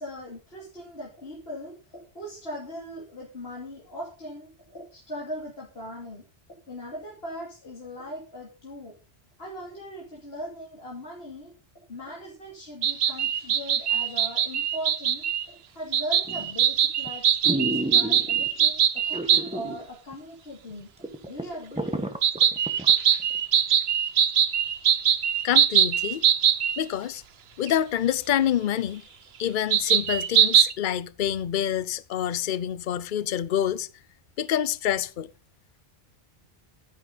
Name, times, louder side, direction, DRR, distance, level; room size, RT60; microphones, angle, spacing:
voice 1, 0.0-6.3 6.7-8.9 9.4-11.5 11.9-20.9 21.3-22.0, equal, 75° left, 3.0 m, -39 dB
sound 1, 12.8-15.4 15.9-19.4 22.2-26.8 27.7-27.8 29.7-30.7, right 9 dB, 75° right, 1.0 m, -22 dB
sound 2, 16.3-16.6 17.1-17.2 17.4-18.5 19.1-19.8 20.1-20.2 20.7-20.8 21.0-22.9 23.4-23.5, right 1 dB, 5° right, 1.3 m, -31 dB
voice 2, 25.4-26.2 26.8-27.2 27.6-29.0 29.4-33.9 34.4-35.3, left 10 dB, 55° left, 0.8 m, -27 dB
12.0 x 10.5 x 4.0 m
omnidirectional pair, 1.0 m